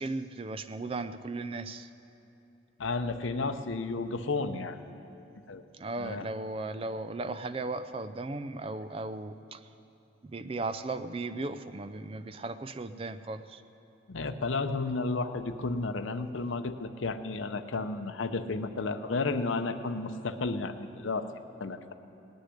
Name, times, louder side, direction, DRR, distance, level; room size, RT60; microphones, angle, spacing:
voice 1, 0.0-1.9 5.7-9.7 10.2-13.6, right 2 dB, 30° right, 12 dB, 0.4 m, -36 dB
voice 2, 2.8-4.8 5.5-5.6 6.0-6.3 14.1-21.3 21.6-21.9, left 3 dB, 75° left, 9 dB, 0.7 m, -32 dB
18.5 x 6.5 x 9.8 m, 2.9 s
head